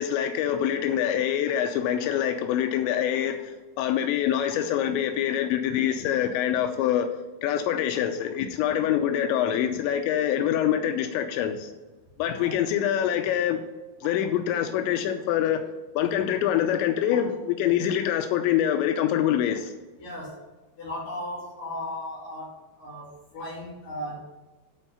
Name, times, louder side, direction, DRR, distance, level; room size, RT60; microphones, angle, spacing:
voice 1, 0.0-7.1 7.4-11.7 12.2-13.6 14.0-15.6 16.0-19.7, left 10 dB, 85° left, 6 dB, 2.9 m, -25 dB
voice 2, 20.0-20.5 20.8-24.2, left 1 dB, 55° left, -7 dB, 4.1 m, -36 dB
12.5 x 4.5 x 5.6 m, 1.2 s
omnidirectional pair, 5.2 m